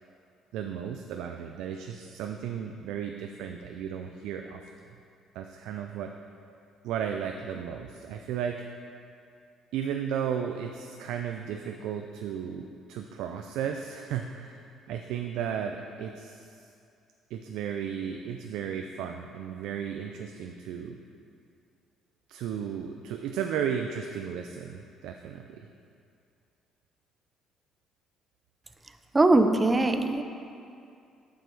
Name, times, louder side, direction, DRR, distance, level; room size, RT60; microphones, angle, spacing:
voice 1, 0.5-4.6 5.3-6.1 6.8-8.7 9.7-16.5 17.3-21.0 22.3-25.7, right 8 dB, 85° right, 4 dB, 0.3 m, -34 dB
voice 2, 29.1-30.2, right 2 dB, 20° right, 8 dB, 0.5 m, -21 dB
7.6 x 5.3 x 4.5 m, 2.5 s
cardioid pair, 110°, 0 cm